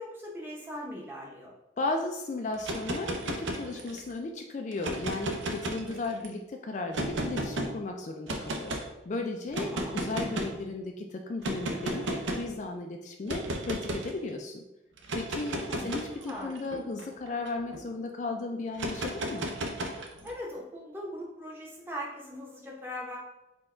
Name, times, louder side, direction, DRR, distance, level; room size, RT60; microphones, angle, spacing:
voice 1, 0.0-1.5 9.6-10.0 15.4-15.9 16.2-16.5 20.2-23.2, equal, 10° right, -2 dB, 0.8 m, -40 dB
voice 2, 1.8-8.8 9.1-14.6 15.1-19.5, left 2 dB, 40° left, 3 dB, 0.3 m, -35 dB
sound 1, 2.5-4.1 4.7-6.3 6.9-7.7 8.3-8.9 9.5-10.6 11.4-12.5 13.3-14.1 15.0-17.8 18.7-20.3, right 1 dB, 85° right, 0.6 m, -34 dB
4.3 x 2.3 x 4.3 m, 0.95 s
head